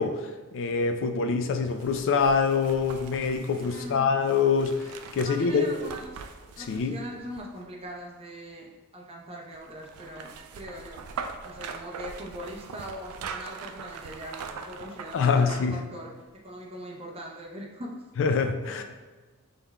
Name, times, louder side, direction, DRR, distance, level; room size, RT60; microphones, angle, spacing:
voice 1, 0.0-5.9 6.6-7.0 15.1-15.8 18.2-18.8, left 5 dB, 60° left, 6 dB, 0.3 m, -25 dB
sound 1, 1.7-7.8 9.5-15.8 16.2-16.3, right 5 dB, 70° right, 0.3 m, -42 dB
voice 2, 3.7-4.1 5.2-6.2 6.6-8.7 8.9-11.0 11.4-16.1 16.4-18.0 18.7-18.8, equal, 25° right, -1 dB, 0.7 m, -41 dB
5.4 x 3.4 x 2.2 m, 1.3 s
head